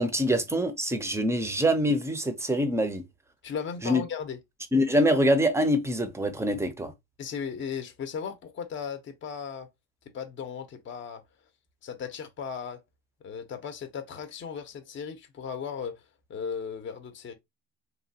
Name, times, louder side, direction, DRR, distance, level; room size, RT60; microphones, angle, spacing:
voice 1, 0.0-3.0 3.8-4.0 4.7-6.9, equal, 10° right, 0.6 m, -25 dB
voice 2, 3.4-4.4 7.2-9.7 10.1-11.2 11.8-12.8 13.2-16.0 16.3-17.3, left 6 dB, 35° left, 0.7 m, -36 dB
3.0 x 2.2 x 2.7 m
supercardioid pair, 95°, 34 cm